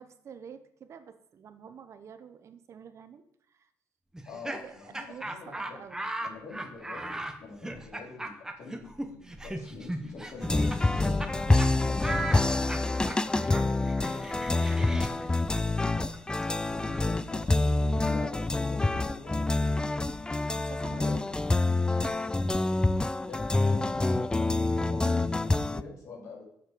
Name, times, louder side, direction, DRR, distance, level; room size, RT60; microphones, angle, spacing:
voice 1, 0.0-3.7 4.3-6.1 11.3-11.6 20.5-21.3 22.0-22.4, right 7 dB, 55° right, 10 dB, 0.8 m, -48 dB
Laughter, 4.1-11.3 11.6-11.7 12.0-17.7, right 1 dB, 10° right, 1.0 m, -38 dB
voice 2, 4.2-5.8 6.2-11.4 11.9-16.1 16.7-19.7 21.0-21.2 23.2-26.4, left 4 dB, 65° left, -2 dB, 2.9 m, -46 dB
sound 1, 10.4-25.8, left 2 dB, 15° left, 0.4 m, -27 dB
6.9 x 6.4 x 4.9 m, 0.72 s
cardioid pair, 75°, 6 cm